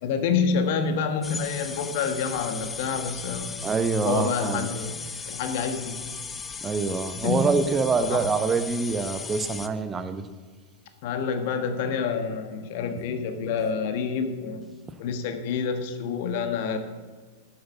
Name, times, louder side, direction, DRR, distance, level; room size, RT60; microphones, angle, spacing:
voice 1, 0.0-3.5 4.0-6.0 7.2-7.6 8.1-8.2 11.0-14.7 15.0-16.8, left 5 dB, 50° left, 8 dB, 1.3 m, -28 dB
sound 1, 1.2-9.7, left 5 dB, 20° left, 0.7 m, -37 dB
voice 2, 3.6-4.7 6.6-10.2, right 4 dB, 20° right, 10 dB, 0.9 m, -25 dB
12.0 x 7.9 x 7.0 m, 1.5 s
figure-of-eight pair, 90°, 0 cm